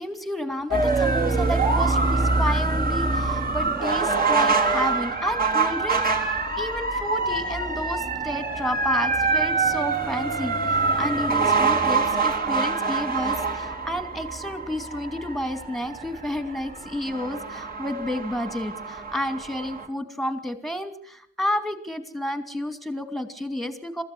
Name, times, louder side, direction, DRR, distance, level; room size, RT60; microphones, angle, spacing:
voice 1, 0.0-24.0, left 1 dB, ahead, 10 dB, 2.6 m, -31 dB
sound 1, 0.7-19.9, right 3 dB, 30° right, 3.8 m, -25 dB
23.0 x 14.5 x 8.0 m, 0.63 s
cardioid pair, 90°, 30 cm